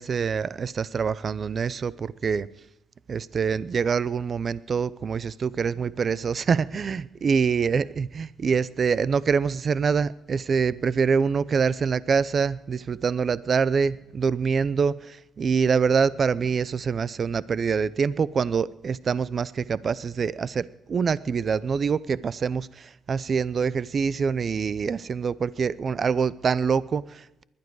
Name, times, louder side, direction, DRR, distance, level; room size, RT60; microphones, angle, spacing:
voice 1, 0.0-2.5 3.1-27.4, right 6 dB, 45° right, 18 dB, 0.5 m, -25 dB
20.5 x 12.0 x 4.7 m, 0.89 s
cardioid pair, 90°, 0 cm